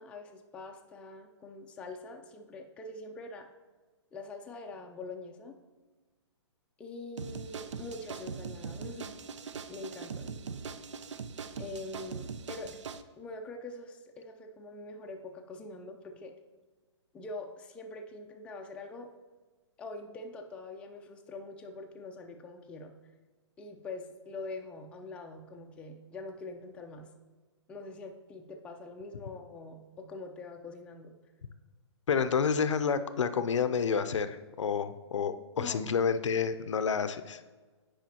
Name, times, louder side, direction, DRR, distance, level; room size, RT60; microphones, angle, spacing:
voice 1, 0.0-3.5 4.1-5.6 6.8-9.3 9.7-10.4 11.6-12.7 13.2-16.3 17.1-19.1 19.8-22.9 23.6-27.1 27.7-31.1 35.6-36.0, left 2 dB, 5° left, 2 dB, 0.4 m, -44 dB
sound 1, 7.2-13.0, right 5 dB, 85° right, 0.5 m, -41 dB
voice 2, 32.1-37.4, left 6 dB, 85° left, 11 dB, 0.5 m, -29 dB
9.0 x 4.9 x 2.9 m, 1.3 s
hypercardioid pair, 145°, 15 cm